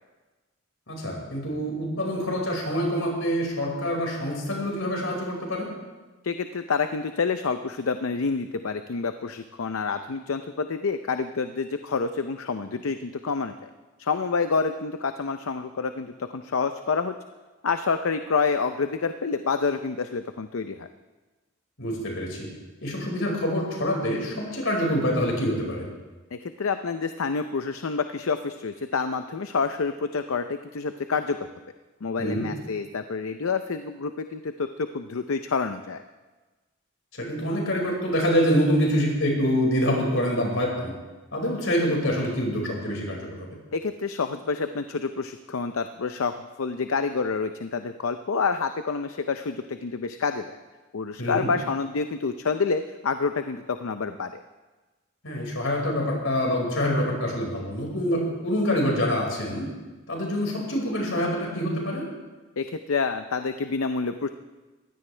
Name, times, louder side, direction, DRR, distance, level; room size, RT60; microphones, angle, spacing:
voice 1, 0.9-5.7 21.8-22.5 22.8-25.9 32.2-32.5 37.1-40.9 41.3-43.5 51.2-51.5 55.2-59.7 60.1-62.1, equal, 75° left, -1 dB, 5.2 m, -26 dB
voice 2, 6.2-13.7 14.0-17.2 17.6-20.9 26.3-31.4 32.0-36.0 43.7-50.5 50.9-54.4 62.6-64.3, left 4 dB, 90° left, 9 dB, 0.6 m, -28 dB
22.0 x 16.0 x 3.3 m, 1.2 s
head